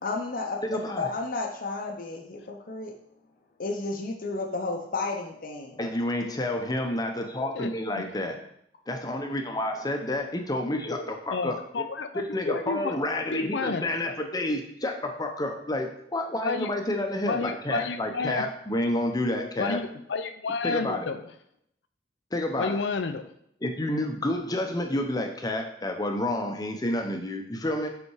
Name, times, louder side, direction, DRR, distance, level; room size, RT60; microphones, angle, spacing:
voice 1, 0.0-3.0 3.6-5.8 7.4-7.5 9.8-9.9 12.4-12.6, left 3 dB, 50° left, 2 dB, 0.8 m, -32 dB
voice 2, 0.6-1.1 5.8-8.4 8.9-11.8 12.1-19.8 20.6-21.1 22.3-22.8 23.6-27.9, left 1 dB, 20° left, 4 dB, 0.8 m, -29 dB
voice 3, 7.5-8.0 11.3-12.2 12.7-13.0 13.3-13.9 16.4-16.7 17.3-18.5 19.6-21.2 22.6-23.3, left 4 dB, 85° left, 9 dB, 0.6 m, -31 dB
5.4 x 4.3 x 4.7 m, 0.72 s
head